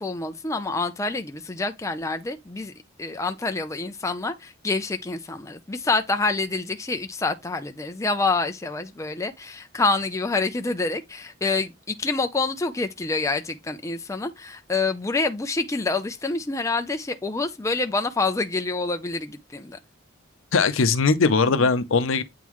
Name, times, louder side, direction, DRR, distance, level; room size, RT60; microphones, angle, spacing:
voice 1, 0.0-2.7 3.0-19.8, left 3 dB, 15° left, 0.5 m, -27 dB
voice 2, 20.5-22.2, left 4 dB, 75° left, 0.6 m, -20 dB
8.3 x 3.7 x 3.1 m
head